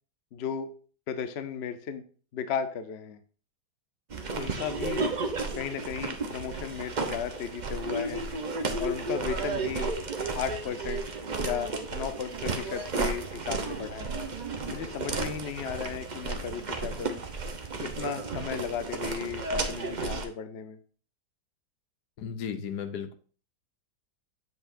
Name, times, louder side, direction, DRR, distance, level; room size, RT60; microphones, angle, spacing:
voice 1, 0.3-0.7 1.1-2.0 2.3-3.2 4.3-5.0 5.5-8.2 8.8-9.9 10.3-11.0 11.4-14.1 14.7-17.2 17.8-20.8, left 7 dB, 50° left, 10 dB, 0.9 m, -35 dB
sound 1, 4.1-20.3, right 3 dB, 35° right, 0.7 m, -33 dB
voice 2, 22.2-23.1, left 7 dB, 80° left, 9 dB, 1.3 m, -35 dB
8.2 x 7.4 x 2.6 m, 0.39 s
omnidirectional pair, 1.8 m